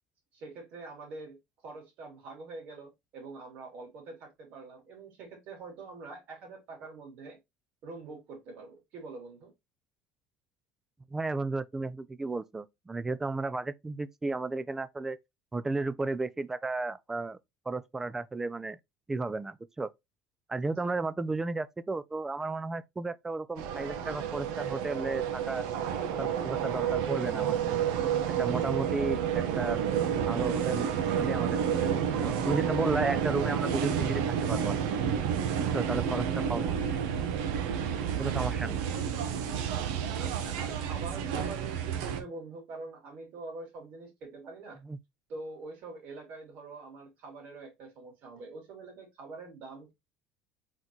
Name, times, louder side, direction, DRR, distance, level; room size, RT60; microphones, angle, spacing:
voice 1, 0.3-1.4 1.6-7.4 7.8-9.5 20.8-20.9 37.6-37.8 40.2-44.8 45.3-49.9, right 3 dB, 55° right, 2.8 m, -44 dB
voice 2, 11.1-15.2 15.5-17.4 17.7-18.8 19.1-19.9 20.5-25.6 26.1-27.8 28.4-29.8 30.2-30.9 31.2-35.0 35.6-36.9 38.2-38.8 44.8-45.0, right 3 dB, 15° right, 0.4 m, -34 dB
sound 1, 23.6-42.2, right 8 dB, 85° right, 0.9 m, -30 dB
4.2 x 3.9 x 2.9 m
cardioid pair, 130°, 3 cm